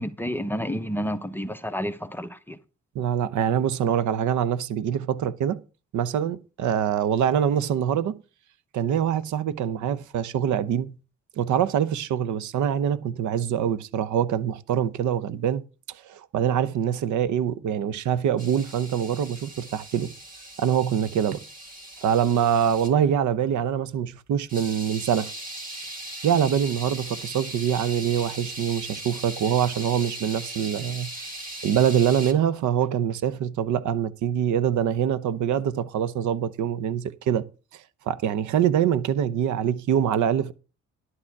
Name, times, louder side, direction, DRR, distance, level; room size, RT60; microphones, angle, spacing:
voice 1, 0.0-2.6, equal, 5° left, 0.8 m, -30 dB
voice 2, 2.9-5.6 5.9-8.2 8.7-11.0 11.4-15.6 16.0-20.1 20.6-21.4 22.0-25.3 26.2-31.1 31.6-37.5 37.7-40.5, right 9 dB, 75° right, 0.8 m, -24 dB
sound 1, 18.4-22.9 24.5-32.3, right 1 dB, 30° right, 2.8 m, -39 dB
11.5 x 8.7 x 4.7 m
cardioid pair, 90°, 30 cm